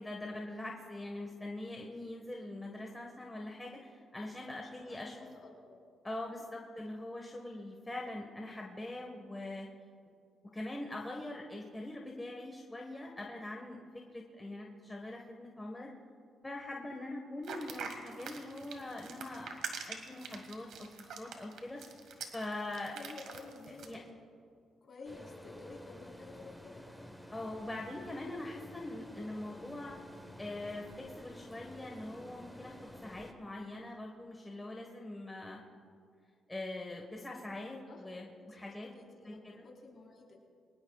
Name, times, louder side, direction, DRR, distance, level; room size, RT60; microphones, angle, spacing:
voice 1, 0.0-5.1 6.0-9.7 10.5-13.8 14.1-15.9 16.4-19.6 19.9-21.9 22.3-23.0 23.9-24.0 27.3-30.0 30.4-32.7 33.0-35.6 36.5-38.9 39.2-39.6, left 2 dB, 15° left, 0 dB, 1.5 m, -43 dB
voice 2, 4.6-5.8 6.3-6.6 16.8-16.9 22.9-24.1 24.8-26.9 37.8-40.4, left 3 dB, 50° left, -2 dB, 4.2 m, -52 dB
sound 1, 17.4-23.9, right 6 dB, 75° right, 1.8 m, -44 dB
sound 2, 25.0-33.3, left 1 dB, ahead, 1.2 m, -51 dB
23.0 x 19.5 x 2.4 m, 2.3 s
cardioid pair, 90°, 0 cm